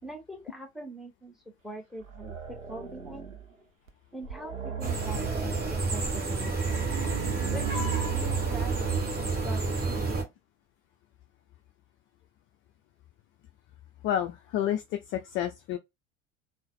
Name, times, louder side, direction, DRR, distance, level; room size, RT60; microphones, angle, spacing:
voice 1, 0.0-1.4 1.6-3.3 4.1-6.7 7.5-7.8 8.1-9.0 9.4-10.3, right 2 dB, ahead, 1.1 m, -43 dB
sound 1, 2.0-3.5 3.9-4.0 4.2-5.8 6.4-9.5, right 8 dB, 85° right, 0.7 m, -36 dB
sound 2, 4.8-10.2, right 3 dB, 25° right, 1.3 m, -30 dB
voice 2, 14.0-15.8, left 11 dB, 35° left, 0.4 m, -30 dB
3.9 x 2.0 x 2.4 m
figure-of-eight pair, 70°, 39 cm